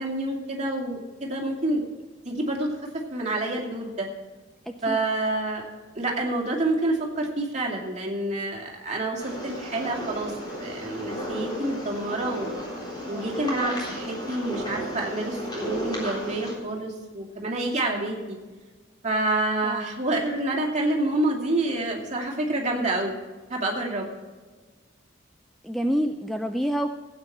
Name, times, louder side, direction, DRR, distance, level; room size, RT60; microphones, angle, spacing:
voice 1, 0.0-1.8 2.2-4.1 4.8-5.6 5.9-12.6 13.1-18.4 19.0-23.2 23.5-24.1, right 2 dB, 35° right, -1 dB, 2.5 m, -28 dB
voice 2, 4.7-5.0 13.0-13.2 19.6-19.8 25.6-26.9, equal, ahead, 5 dB, 0.4 m, -28 dB
sound 1, 9.2-16.5, equal, 20° left, 3.7 m, -34 dB
16.0 x 9.0 x 4.3 m, 1.4 s
head